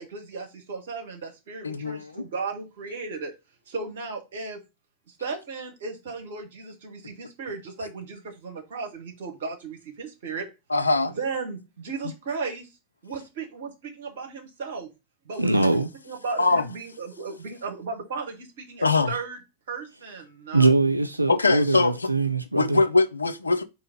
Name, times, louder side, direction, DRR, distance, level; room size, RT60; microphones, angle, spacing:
voice 1, 0.0-3.3 3.7-4.6 5.1-10.5 11.0-12.7 13.0-14.9 15.2-19.4 19.7-20.7, right 4 dB, 60° right, 1.3 m, -35 dB
voice 2, 1.6-2.2 10.7-11.1 15.6-15.7 16.4-16.7 18.8-19.2 21.3-22.1 22.5-23.6, left 3 dB, 80° left, 0.4 m, -22 dB
voice 3, 15.4-15.9 20.5-22.8, right 3 dB, 85° right, 0.3 m, -22 dB
3.8 x 2.9 x 4.8 m
figure-of-eight pair, 90°, 0 cm